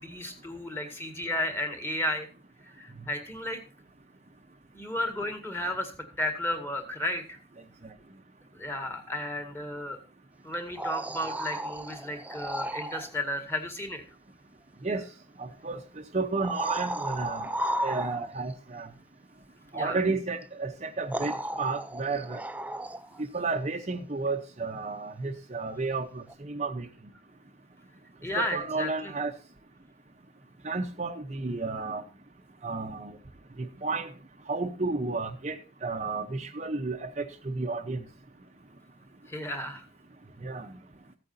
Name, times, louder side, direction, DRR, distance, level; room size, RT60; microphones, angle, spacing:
voice 1, 0.0-2.3 2.6-3.6 4.7-7.4 8.5-10.0 10.4-14.0 19.7-20.0 28.2-29.1 39.3-39.9, left 1 dB, 10° left, 1.8 m, -33 dB
sound 1, 10.5-13.1 15.0-15.1 16.3-18.5 20.4-20.5 21.1-23.2 26.3-26.4, right 1 dB, 10° right, 0.4 m, -34 dB
voice 2, 15.4-15.8 16.1-17.5 17.8-18.9 19.7-22.4 23.3-26.9 28.4-29.3 30.6-32.0 32.6-33.1 33.8-34.1 34.5-38.0 40.4-40.7, right 3 dB, 35° right, 0.7 m, -32 dB
14.5 x 8.7 x 2.6 m
head